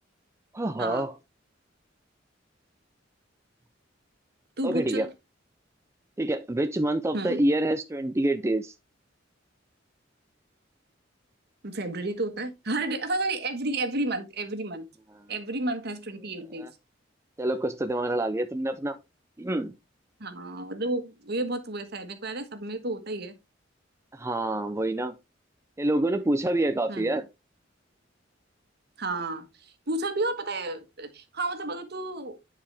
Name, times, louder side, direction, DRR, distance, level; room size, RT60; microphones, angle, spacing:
voice 1, 0.5-1.1 4.6-5.1 6.2-8.7 16.6-16.7 17.4-19.0 19.4-19.7 24.1-25.1 25.8-27.3, right 1 dB, 15° right, 0.5 m, -27 dB
voice 2, 4.6-5.1 7.1-7.4 11.6-14.8 15.3-16.7 20.2-23.3 26.9-27.1 29.0-32.4, right 2 dB, 60° right, 1.5 m, -31 dB
10.0 x 4.8 x 3.4 m
head